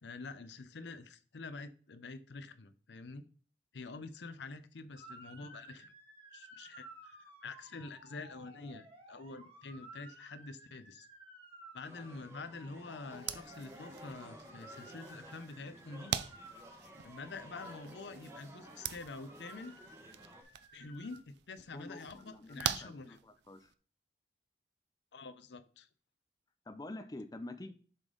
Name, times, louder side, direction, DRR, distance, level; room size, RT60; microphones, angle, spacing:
voice 1, 0.0-3.2 3.7-5.9 6.3-11.1 11.7-16.1 17.0-19.7 20.7-23.2 25.1-25.9, left 3 dB, 85° left, 13 dB, 0.6 m, -47 dB
Motor vehicle (road) / Siren, 5.0-21.2, right 1 dB, 30° right, 1.9 m, -56 dB
sound 1, 11.8-20.4, equal, 15° right, 1.1 m, -54 dB
sound 2, 13.1-23.7, right 9 dB, 80° right, 0.5 m, -44 dB
voice 2, 21.7-23.7 26.7-27.7, left 2 dB, 20° left, 8 dB, 0.5 m, -47 dB
7.5 x 5.0 x 3.8 m, 0.41 s
head